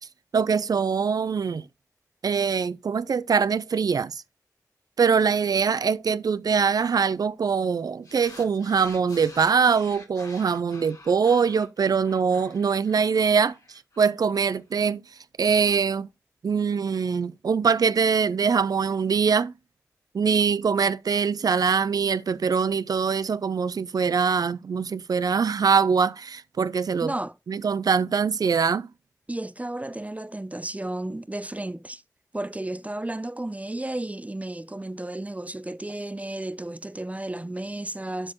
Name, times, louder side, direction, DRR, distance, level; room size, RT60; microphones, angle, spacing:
voice 1, 0.3-1.7 2.2-4.2 5.0-15.0 15.4-16.1 16.4-19.5 20.1-27.1 27.5-28.9, right 6 dB, 90° right, 0.3 m, -23 dB
sound 1, 8.0-14.6, left 2 dB, 70° left, 3.4 m, -48 dB
voice 2, 27.0-27.3 29.3-32.0 32.3-38.3, right 1 dB, 20° right, 0.5 m, -33 dB
12.5 x 4.2 x 3.0 m
cardioid pair, 45°, 6 cm